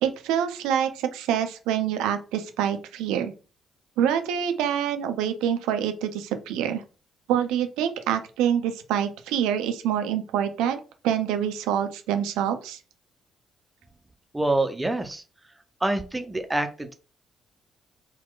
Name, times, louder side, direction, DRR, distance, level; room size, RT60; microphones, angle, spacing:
voice 1, 0.0-3.3 4.0-6.8 7.3-12.8, right 9 dB, 65° right, 8 dB, 0.4 m, -26 dB
voice 2, 14.3-15.2 15.8-16.9, right 2 dB, 15° right, 8 dB, 0.6 m, -26 dB
3.8 x 2.3 x 3.7 m, 0.35 s
figure-of-eight pair, 40°, 0 cm